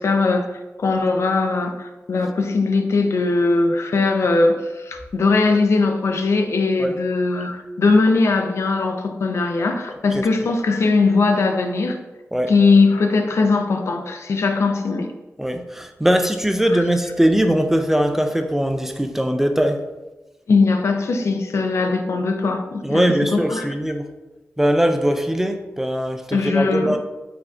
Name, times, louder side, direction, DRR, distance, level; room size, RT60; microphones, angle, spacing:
voice 1, 0.0-12.0 12.5-15.1 16.7-16.8 20.5-23.7 26.3-27.0, left 3 dB, 65° left, 5 dB, 0.5 m, -20 dB
voice 2, 15.4-19.8 22.8-24.0 24.6-27.0, equal, 5° right, 6 dB, 0.4 m, -20 dB
4.9 x 4.5 x 2.4 m, 1.1 s
wide cardioid pair, 105°, 5 cm